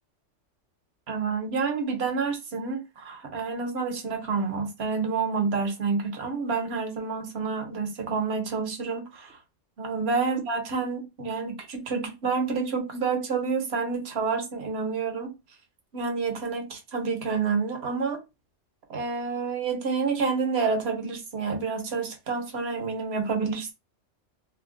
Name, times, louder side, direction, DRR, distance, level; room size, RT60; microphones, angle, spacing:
voice 1, 1.1-9.4 9.8-15.3 15.9-18.2 18.9-23.7, right 5 dB, 60° right, 1.0 m, -28 dB
2.7 x 2.1 x 3.6 m
omnidirectional pair, 1.3 m